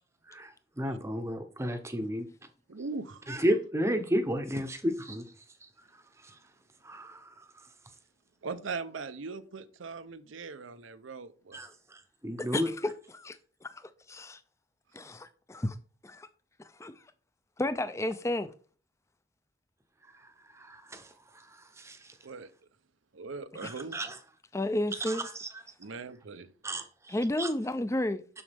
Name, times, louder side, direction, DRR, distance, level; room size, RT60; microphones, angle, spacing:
voice 1, 0.3-2.3 3.3-5.2 5.6-5.7 6.2-6.4 6.8-7.7 11.5-12.7 20.1-22.2 23.6-24.2 25.0-25.5 26.6-27.5, equal, 15° right, 0.7 m, -33 dB
voice 2, 2.7-3.2 8.4-11.6 22.2-22.5 23.1-24.0 25.8-26.5, right 4 dB, 85° right, 0.7 m, -40 dB
voice 3, 12.5-13.4 13.6-13.8 14.1-14.4 14.9-15.7 16.0-16.3 16.8-16.9 17.6-18.5 23.6-23.7 24.5-25.3 27.1-28.2, left 1 dB, 15° left, 0.4 m, -32 dB
7.0 x 6.3 x 3.4 m
head